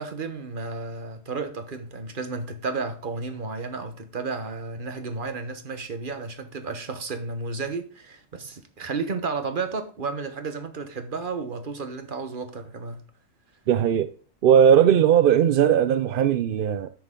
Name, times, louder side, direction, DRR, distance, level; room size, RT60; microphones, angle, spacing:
voice 1, 0.0-13.0, right 4 dB, 40° right, 1.2 m, -32 dB
voice 2, 13.7-14.1 14.4-16.9, right 9 dB, 65° right, 0.5 m, -18 dB
10.0 x 7.8 x 3.8 m
omnidirectional pair, 1.4 m